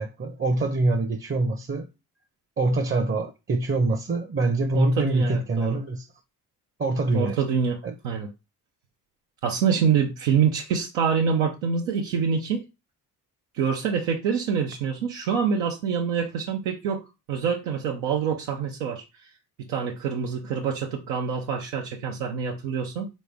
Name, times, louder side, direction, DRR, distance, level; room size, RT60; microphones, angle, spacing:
voice 1, 0.0-1.9 2.6-6.1 6.8-7.4 7.8-7.9, right 2 dB, 30° right, 0.7 m, -25 dB
voice 2, 4.7-5.8 7.1-8.3 9.4-12.6 13.5-19.0 19.6-23.1, right 6 dB, 85° right, 0.7 m, -26 dB
3.9 x 3.1 x 3.5 m
hypercardioid pair, 45°, 43 cm